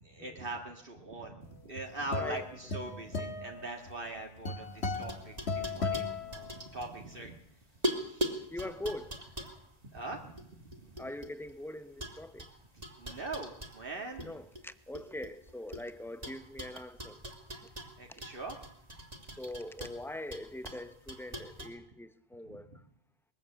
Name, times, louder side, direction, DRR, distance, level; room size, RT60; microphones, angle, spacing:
voice 1, 0.0-7.4 7.8-8.7 9.8-11.1 12.7-14.3 18.0-18.6 22.5-22.8, right 2 dB, 60° right, 2.0 m, -42 dB
sound 1, 1.5-7.0, left 4 dB, 90° left, 2.1 m, -37 dB
sound 2, 4.6-7.5 7.8-11.5 12.0-14.3 14.5-15.8 16.2-21.7, equal, 40° right, 2.8 m, -41 dB
voice 2, 8.5-9.1 11.0-12.5 14.2-17.2 19.4-22.7, left 1 dB, ahead, 0.8 m, -42 dB
21.5 x 14.5 x 8.6 m
omnidirectional pair, 1.0 m